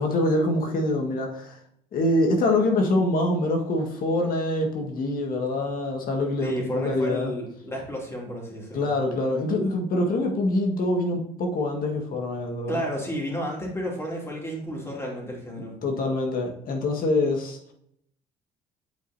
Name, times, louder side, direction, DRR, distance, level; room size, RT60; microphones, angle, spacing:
voice 1, 0.0-1.6 1.9-7.3 8.7-12.8 15.8-17.6, left 2 dB, 60° left, 2 dB, 1.7 m, -25 dB
voice 2, 6.4-8.8 12.7-15.7, equal, 15° left, -1 dB, 2.7 m, -31 dB
8.8 x 5.0 x 2.7 m, 0.70 s
cardioid pair, 110°, 17 cm